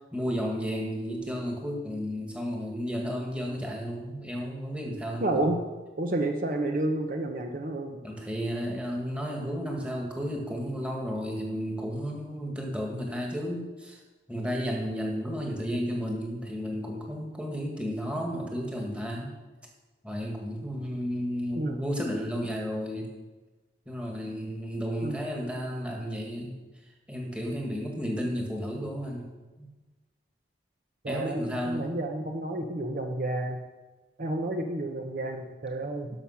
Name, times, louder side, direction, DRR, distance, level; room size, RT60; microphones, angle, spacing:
voice 1, 0.1-5.5 8.0-14.0 14.3-19.3 20.0-23.1 23.9-26.5 27.1-29.3 29.6-29.7 31.1-32.0, equal, 5° right, 0 dB, 1.8 m, -33 dB
voice 2, 5.2-5.6 6.0-8.0 21.5-21.8 25.0-25.2 31.0-33.6 34.2-36.1, right 2 dB, 50° right, 4 dB, 0.8 m, -30 dB
11.0 x 7.1 x 5.8 m, 1.2 s
head